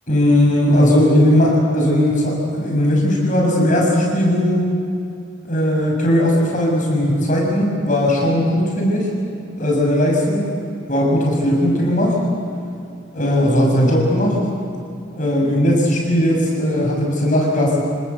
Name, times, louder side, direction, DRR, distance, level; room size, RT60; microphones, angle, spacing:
voice 1, 0.1-4.6 5.4-9.1 9.6-10.5 10.9-12.2 13.1-14.4 15.1-17.8, left 1 dB, 40° left, -1 dB, 6.7 m, -17 dB
27.5 x 19.0 x 8.1 m, 2.5 s
head